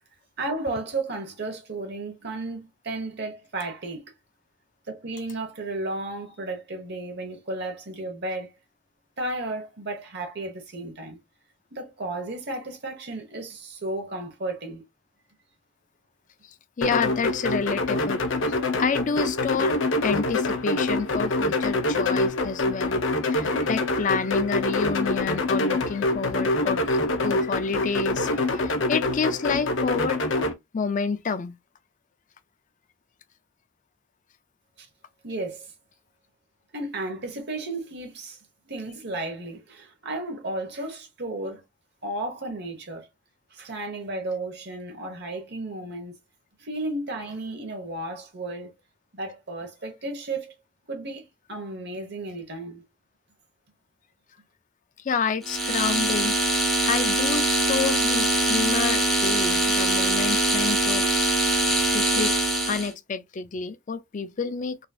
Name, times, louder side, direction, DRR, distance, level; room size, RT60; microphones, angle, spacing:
voice 1, 0.4-4.1 4.9-8.5 9.2-11.2 11.7-14.8 34.8-34.9 35.2-35.7 36.7-38.4 38.6-41.6 42.0-43.1 43.5-46.1 46.6-48.7 49.1-50.5 50.9-52.8, right 2 dB, 60° right, 1.1 m, -33 dB
sound 1, 16.8-30.5, left 2 dB, 85° left, 0.7 m, -25 dB
voice 2, 16.8-19.8 20.0-23.0 23.3-30.2 30.7-31.6 55.0-61.3 61.9-62.3 62.7-64.8, left 5 dB, 40° left, 0.4 m, -29 dB
sound 2, 55.4-62.9, right 1 dB, ahead, 0.9 m, -23 dB
3.9 x 2.8 x 2.3 m
head